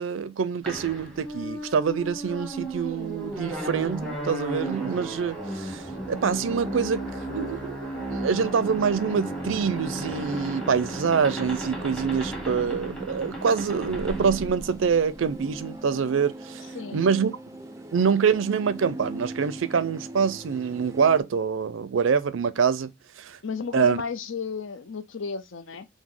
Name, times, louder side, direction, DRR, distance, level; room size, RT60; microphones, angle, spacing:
voice 1, 0.0-5.8 6.1-16.7 16.9-17.3 17.9-22.9 23.2-23.4 23.7-24.0, right 6 dB, 80° right, 0.4 m, -25 dB
sound 1, 0.7-15.4, right 1 dB, 5° left, 0.8 m, -34 dB
sound 2, 14.0-21.2, right 2 dB, 15° right, 0.4 m, -40 dB
voice 2, 16.7-17.1 23.4-25.9, left 5 dB, 75° left, 0.6 m, -33 dB
4.9 x 2.1 x 3.7 m
head